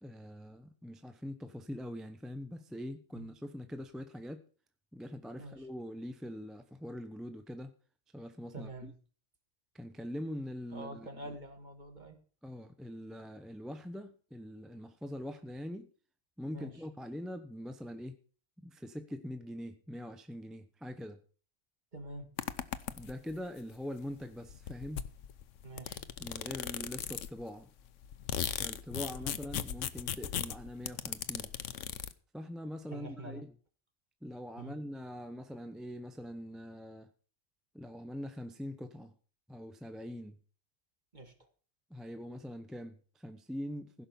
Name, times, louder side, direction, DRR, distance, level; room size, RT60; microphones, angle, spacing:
voice 1, 0.0-4.4 4.9-7.7 8.1-8.9 9.7-11.1 12.4-15.9 16.4-18.2 18.6-21.2 23.0-25.0 26.2-27.7 28.6-31.5 32.3-33.5 34.2-37.1 37.7-39.1 39.5-40.4 41.9-44.1, equal, ahead, 7 dB, 0.7 m, -43 dB
voice 2, 5.4-5.7 8.5-8.9 10.7-12.2 16.5-16.9 21.9-22.3 25.6-26.0 32.9-33.5 34.6-34.8 41.1-41.5, right 1 dB, 35° right, 5 dB, 2.2 m, -46 dB
sound 1, 22.4-23.3 24.2-24.3 24.5-27.4 27.9-32.1, left 9 dB, 70° left, 1.1 m, -38 dB
16.0 x 6.0 x 7.0 m, 0.42 s
omnidirectional pair, 1.4 m